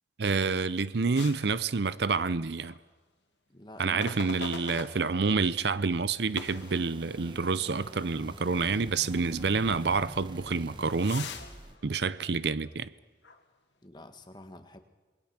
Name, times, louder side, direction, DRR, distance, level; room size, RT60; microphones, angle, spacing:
voice 1, 0.2-2.7 3.8-11.3 11.8-12.9, right 4 dB, 70° right, 0.6 m, -28 dB
sound 1, 1.1-2.4 2.6-2.9 4.0-5.5 6.3-7.5 7.9-8.0 8.7-8.8 10.2-12.9 13.2-13.4, left 5 dB, 85° left, 2.3 m, -44 dB
voice 2, 3.5-4.0 13.8-14.8, left 1 dB, 25° left, 1.6 m, -48 dB
sound 2, 4.8-11.8, right 1 dB, 25° right, 1.2 m, -47 dB
27.5 x 21.0 x 6.0 m
head